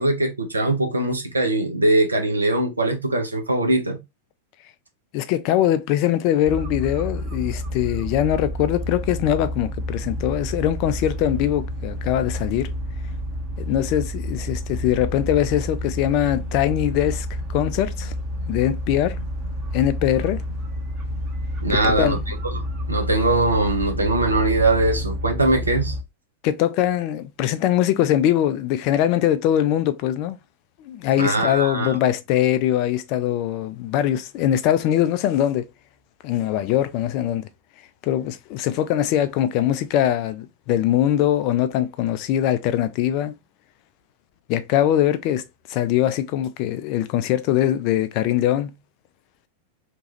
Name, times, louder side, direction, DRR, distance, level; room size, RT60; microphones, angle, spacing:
voice 1, 0.0-4.0 21.6-25.9 31.2-32.0, right 2 dB, 80° right, 0.6 m, -21 dB
voice 2, 5.1-12.7 13.6-18.1 18.5-19.2 19.7-20.4 21.7-22.2 26.4-30.4 30.8-35.7 36.2-37.5 38.0-43.3 44.5-45.4 45.7-48.7, left 11 dB, 45° left, 0.4 m, -22 dB
sound 1, 6.4-26.0, equal, 30° right, 0.8 m, -29 dB
3.0 x 2.3 x 2.8 m
figure-of-eight pair, 90°, 0 cm